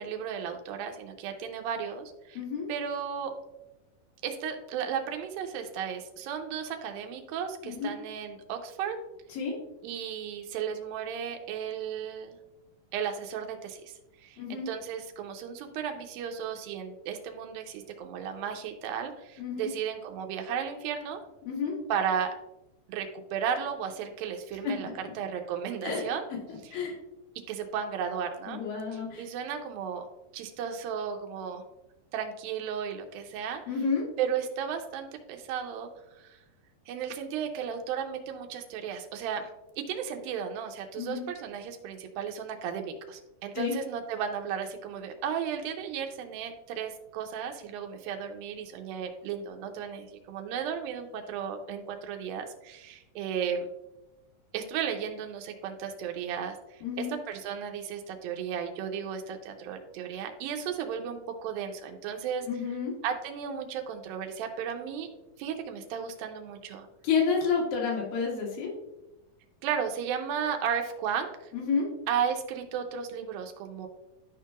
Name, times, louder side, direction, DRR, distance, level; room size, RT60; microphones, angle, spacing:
voice 1, 0.0-2.4 2.7-3.3 4.2-9.0 9.8-12.4 12.9-21.2 21.9-22.3 22.9-24.9 25.2-26.3 26.6-26.8 27.5-28.6 28.9-30.1 30.3-31.6 32.1-33.6 34.2-35.9 36.2-36.4 36.9-39.5 39.8-53.7 54.5-62.5 63.0-65.1 65.4-66.9 69.6-71.5 72.1-73.9, right 7 dB, 90° right, 4 dB, 2.4 m, -34 dB
voice 2, 2.4-2.7 7.6-7.9 9.3-9.6 14.4-14.7 19.4-19.7 21.5-21.8 24.6-25.1 25.8-26.0 26.7-27.0 28.5-29.2 33.7-34.0 41.0-41.2 43.6-43.8 56.8-57.1 62.5-62.9 67.0-68.7 71.5-71.9, left 5 dB, 75° left, -3 dB, 3.3 m, -30 dB
11.0 x 4.6 x 2.4 m, 0.94 s
omnidirectional pair, 4.1 m